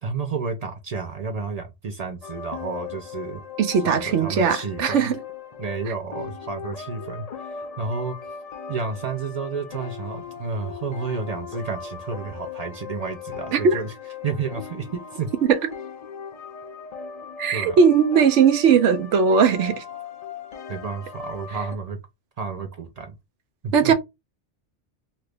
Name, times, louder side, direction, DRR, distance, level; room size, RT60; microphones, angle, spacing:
voice 1, 0.0-3.4 3.8-5.1 5.6-8.2 8.7-13.9 14.2-15.3 17.5-17.8 20.7-22.0 22.4-23.1 23.6-23.9, right 5 dB, 50° right, 0.4 m, -31 dB
sound 1, 2.2-21.8, left 6 dB, 65° left, 0.4 m, -38 dB
voice 2, 3.6-5.2 13.5-13.8 15.4-15.6 17.4-19.8 23.7-23.9, right 6 dB, 80° right, 0.9 m, -18 dB
2.8 x 2.5 x 3.3 m
omnidirectional pair, 1.2 m